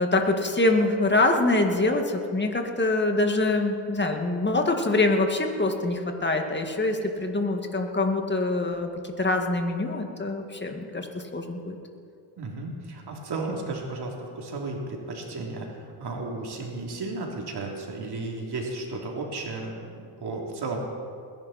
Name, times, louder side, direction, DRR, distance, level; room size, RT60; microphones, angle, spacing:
voice 1, 0.0-11.8, left 2 dB, 20° left, 4 dB, 2.2 m, -25 dB
voice 2, 12.4-20.8, right 3 dB, 50° right, -1 dB, 3.5 m, -34 dB
20.5 x 11.0 x 4.4 m, 2.3 s
supercardioid pair, 65°, 50 cm